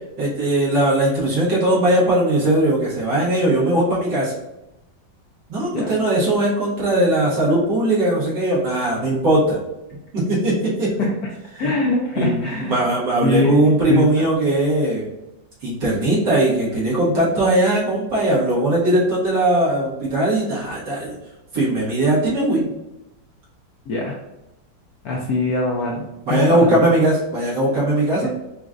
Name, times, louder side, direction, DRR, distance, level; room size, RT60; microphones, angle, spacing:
voice 1, 0.2-4.3 5.5-9.6 10.1-10.9 11.5-11.7 12.2-15.1 15.6-21.2 21.5-22.7 26.3-28.3, right 1 dB, 65° right, -7 dB, 2.1 m, -19 dB
voice 2, 11.6-12.8 13.2-14.1 23.9-24.1 25.0-26.9 28.2-28.3, left 2 dB, 70° left, -1 dB, 0.9 m, -22 dB
4.9 x 3.0 x 2.4 m, 0.92 s
omnidirectional pair, 2.0 m